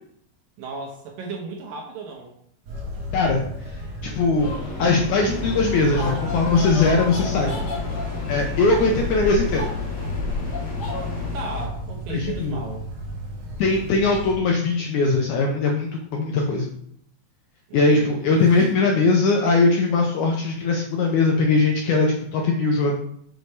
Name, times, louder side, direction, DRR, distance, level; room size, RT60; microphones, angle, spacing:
voice 1, 0.6-2.3 7.2-7.7 11.3-12.8 17.7-18.6, right 3 dB, 75° right, 0 dB, 2.6 m, -35 dB
sound 1, 2.7-14.3, equal, 55° right, 1.7 m, -34 dB
voice 2, 3.1-4.5 4.8-7.5 8.3-9.7 12.1-12.6 13.6-16.7 17.7-23.0, left 3 dB, 75° left, 0 dB, 1.9 m, -20 dB
sound 2, 4.4-11.3, left 2 dB, 55° left, 1.1 m, -33 dB
sound 3, 5.2-11.7, left 7 dB, 35° left, 2.1 m, -32 dB
6.5 x 5.0 x 4.6 m, 0.68 s
omnidirectional pair, 4.2 m